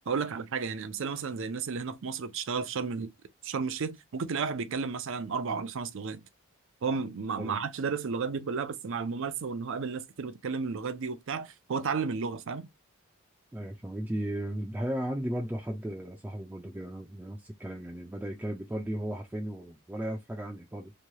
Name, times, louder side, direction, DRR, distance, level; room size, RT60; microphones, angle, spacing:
voice 1, 0.1-3.1 3.4-6.2 6.8-12.7, right 5 dB, 65° right, 0.5 m, -33 dB
voice 2, 13.5-20.9, right 1 dB, 10° right, 0.4 m, -35 dB
3.1 x 2.3 x 2.7 m
head